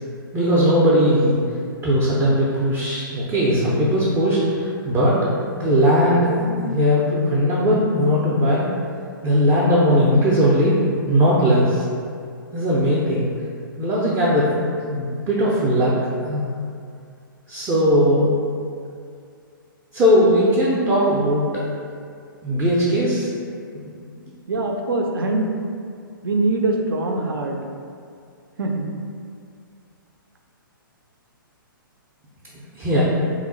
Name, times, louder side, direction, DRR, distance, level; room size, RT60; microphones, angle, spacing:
voice 1, 0.3-1.4 1.8-5.2 5.5-8.7 9.2-10.7 11.1-11.8 12.5-13.3 13.8-14.5 14.8-16.0 16.2-16.5 17.5-18.4 19.9-21.6 22.4-23.3 23.7-23.9 32.5-33.0, equal, 15° right, -8 dB, 0.4 m, -19 dB
voice 2, 24.5-25.5 26.2-27.6 28.6-28.9, right 2 dB, 80° right, 2 dB, 0.4 m, -23 dB
2.8 x 2.0 x 3.7 m, 2.3 s
hypercardioid pair, 140°, 12 cm